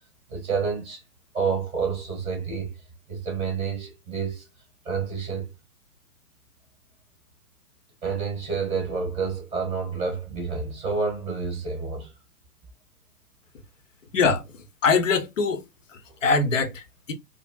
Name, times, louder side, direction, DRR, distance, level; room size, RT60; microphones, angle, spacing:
voice 1, 0.3-1.0 1.3-2.7 3.1-4.5 4.8-5.5 8.0-12.1, right 5 dB, 15° right, 1.5 m, -29 dB
voice 2, 14.1-15.6 15.9-17.1, left 4 dB, 55° left, 0.8 m, -23 dB
5.0 x 2.0 x 2.2 m
figure-of-eight pair, 120°, 46 cm